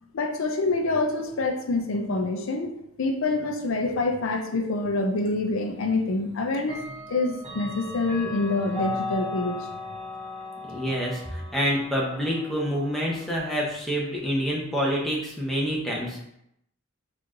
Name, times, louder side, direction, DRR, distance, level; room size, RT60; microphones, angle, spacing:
voice 1, 0.1-9.7, left 2 dB, 80° left, 4 dB, 0.5 m, -26 dB
Clock, 5.2-5.3 6.6-13.4, left 3 dB, 30° right, 0.8 m, -37 dB
voice 2, 10.7-16.2, equal, ahead, -4 dB, 0.7 m, -27 dB
4.5 x 2.5 x 3.6 m, 0.77 s
head